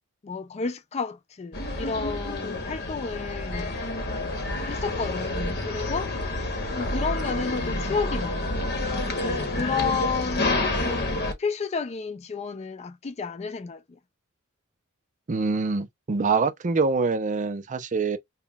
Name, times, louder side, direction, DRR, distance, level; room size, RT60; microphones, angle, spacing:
voice 1, 0.2-3.7 4.7-6.1 6.7-8.6 9.2-13.8, left 5 dB, 30° left, 0.4 m, -31 dB
sound 1, 1.5-11.3, left 2 dB, 55° left, 1.0 m, -29 dB
voice 2, 15.3-18.2, right 4 dB, 35° right, 0.5 m, -25 dB
5.5 x 2.2 x 2.3 m
head